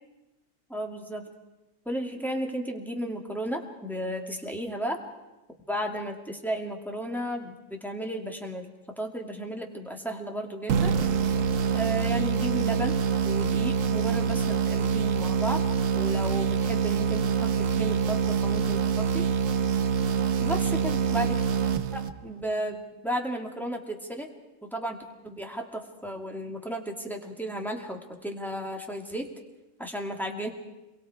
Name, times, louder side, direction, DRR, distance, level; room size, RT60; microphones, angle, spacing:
voice 1, 0.7-1.2 1.9-5.0 5.7-8.7 9.0-10.9 11.7-13.0 13.2-15.6 15.9-19.3 20.4-21.4 21.9-24.3 24.6-25.0 25.2-29.3 29.8-30.5, right 1 dB, ahead, 1 dB, 2.3 m, -34 dB
sound 1, 10.7-22.4, right 6 dB, 90° right, 1.3 m, -25 dB
27.5 x 23.0 x 4.8 m, 1.0 s
omnidirectional pair, 1.3 m